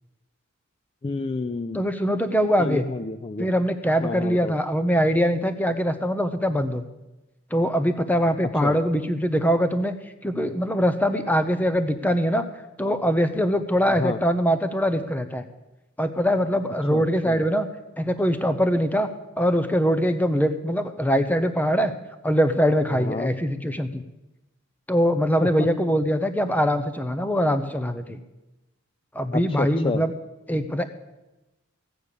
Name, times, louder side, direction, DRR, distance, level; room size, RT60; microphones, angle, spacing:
voice 1, 1.0-1.8 2.6-3.5 4.0-4.5 8.6-8.7 13.9-14.2 16.9-17.4 22.9-23.3 25.4-25.7 29.3-30.0, left 3 dB, 25° left, 10 dB, 0.4 m, -29 dB
voice 2, 1.7-2.8 3.4-6.8 7.5-9.9 10.2-12.5 12.8-15.4 16.0-17.7 18.0-19.1 19.4-21.9 22.2-24.0 24.9-28.2 29.1-30.1 30.5-30.8, equal, 10° left, 10 dB, 0.7 m, -22 dB
14.5 x 8.9 x 6.7 m, 1.0 s
head